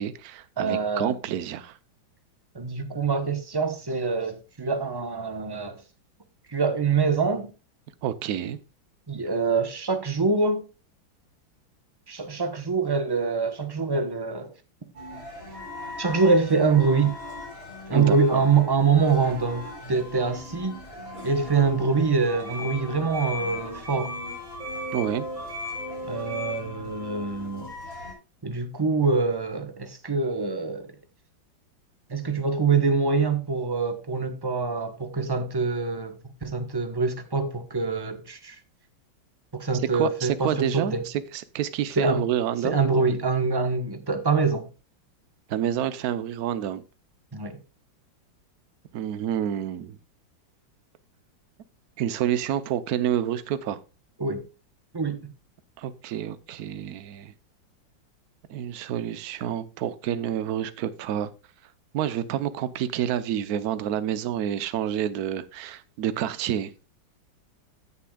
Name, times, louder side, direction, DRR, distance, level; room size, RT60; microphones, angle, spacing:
voice 1, 0.0-1.8 8.0-8.6 17.9-18.4 24.9-25.3 39.9-42.8 45.5-46.8 48.9-50.0 52.0-53.8 55.8-57.3 58.5-61.3 61.9-66.7, right 10 dB, 60° right, 1.1 m, -28 dB
voice 2, 0.6-1.2 2.5-5.8 6.5-7.5 9.1-10.6 12.1-14.5 16.0-17.1 17.9-20.8 21.2-24.2 26.1-27.7 28.4-30.9 32.1-38.6 39.5-41.0 42.0-42.2 42.6-44.7 47.3-47.6 54.2-54.4 54.9-55.2, right 4 dB, 20° right, 0.6 m, -25 dB
sound 1, 14.9-28.1, left 1 dB, 45° right, 4.5 m, -37 dB
16.5 x 6.9 x 2.3 m
omnidirectional pair, 2.1 m